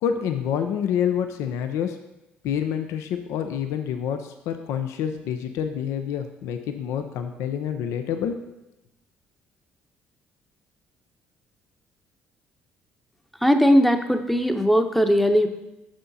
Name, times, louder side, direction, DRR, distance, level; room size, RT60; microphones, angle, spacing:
voice 1, 0.0-2.0 2.4-8.4, left 8 dB, 70° left, 7 dB, 0.5 m, -27 dB
voice 2, 13.4-15.5, equal, ahead, 7 dB, 0.8 m, -19 dB
6.3 x 5.8 x 4.1 m, 0.95 s
hypercardioid pair, 55°, 5 cm